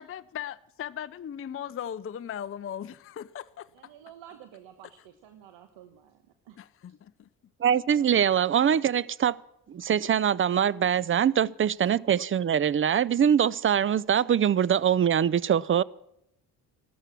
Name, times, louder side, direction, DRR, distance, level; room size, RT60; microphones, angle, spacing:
voice 1, 0.0-3.7 6.6-7.3 11.4-11.5, left 9 dB, 30° left, 0.5 m, -38 dB
voice 2, 3.7-6.6, right 10 dB, 70° right, 1.3 m, -51 dB
voice 3, 7.6-9.4 9.7-15.8, right 8 dB, 25° right, 0.5 m, -23 dB
14.0 x 13.0 x 6.1 m
hypercardioid pair, 50°, 48 cm